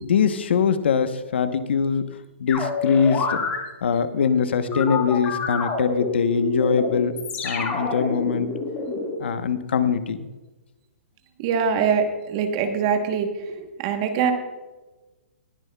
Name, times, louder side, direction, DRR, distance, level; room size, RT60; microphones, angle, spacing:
voice 1, 0.0-2.0 2.4-3.4 3.8-7.2 7.4-8.5 9.2-10.3, left 6 dB, 60° left, 10 dB, 1.0 m, -22 dB
sound 1, 2.5-3.6 4.7-9.1, left 4 dB, 15° left, 1.9 m, -27 dB
voice 2, 11.4-13.3 13.6-14.3, right 6 dB, 25° right, 6 dB, 1.1 m, -23 dB
20.0 x 10.5 x 2.3 m, 1.1 s
hypercardioid pair, 175°, 7 cm